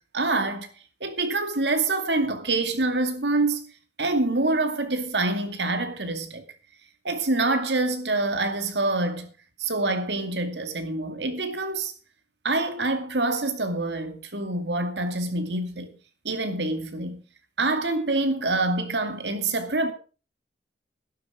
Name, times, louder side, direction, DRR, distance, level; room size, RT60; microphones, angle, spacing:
voice 1, 0.1-0.7 1.0-3.7 4.0-6.4 7.0-9.3 9.6-11.9 12.4-15.9 16.2-17.2 17.6-19.9, right 2 dB, 80° right, 2.4 m, -26 dB
12.0 x 12.0 x 5.0 m
head